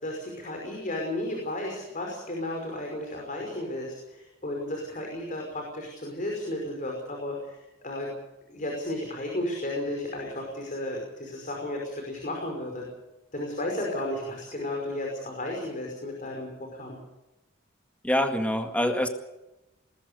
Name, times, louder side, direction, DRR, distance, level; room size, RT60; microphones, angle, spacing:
voice 1, 0.0-8.1 8.5-12.9 13.3-17.0, left 1 dB, 45° left, 0 dB, 5.5 m, -33 dB
voice 2, 18.0-19.1, left 1 dB, 5° left, 5 dB, 2.0 m, -25 dB
21.0 x 20.0 x 6.9 m, 0.95 s
head